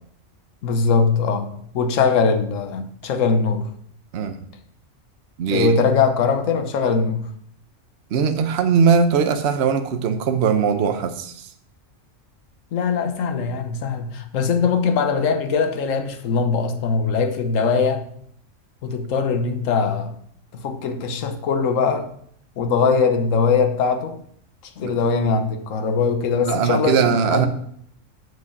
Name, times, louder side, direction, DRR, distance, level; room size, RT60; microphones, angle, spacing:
voice 1, 0.6-3.7 5.5-7.3 12.7-18.0 18.8-20.1 20.5-22.1 22.6-24.2 24.8-27.5, left 5 dB, 75° left, 1.3 m, -21 dB
voice 2, 5.4-5.8 8.1-11.5 24.8-24.9 26.4-27.5, right 6 dB, 60° right, 1.0 m, -20 dB
7.7 x 5.5 x 6.9 m
omnidirectional pair, 1.4 m